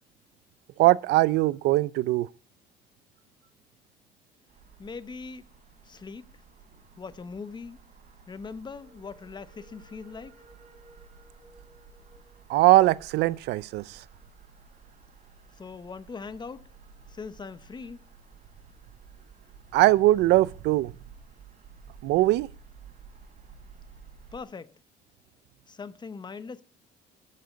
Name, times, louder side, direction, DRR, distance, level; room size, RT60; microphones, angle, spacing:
voice 1, 0.8-2.3 12.5-14.0 19.7-20.9 22.0-22.5, right 17 dB, 85° right, 0.5 m, -21 dB
sound 1, 4.5-24.4, right 5 dB, 45° right, 3.5 m, -53 dB
voice 2, 4.8-5.5 5.8-6.4 7.0-7.8 8.3-10.4 15.5-16.7 17.1-18.0 24.3-24.8 25.7-26.6, left 5 dB, 25° left, 0.9 m, -41 dB
12.0 x 6.6 x 9.5 m
cardioid pair, 110°, 17 cm